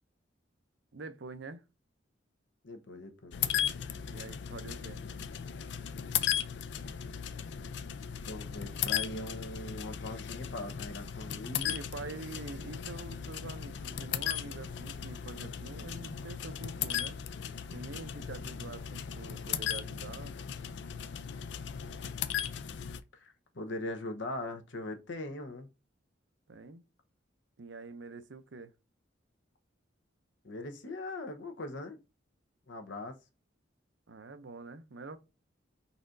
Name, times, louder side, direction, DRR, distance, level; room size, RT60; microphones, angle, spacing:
voice 1, 0.9-1.6 4.0-5.0 11.7-17.2 17.7-20.3 26.5-26.8 27.6-28.7 34.1-35.2, right 3 dB, 75° right, 0.6 m, -45 dB
voice 2, 2.6-3.4 7.2-7.3 8.3-11.8 23.1-25.7 30.4-32.0 32.7-33.1, left 2 dB, 80° left, 0.9 m, -40 dB
sound 1, 3.3-23.0, left 9 dB, 65° left, 0.4 m, -37 dB
sound 2, 8.4-19.8, right 2 dB, 20° right, 1.6 m, -64 dB
4.8 x 4.1 x 2.6 m
head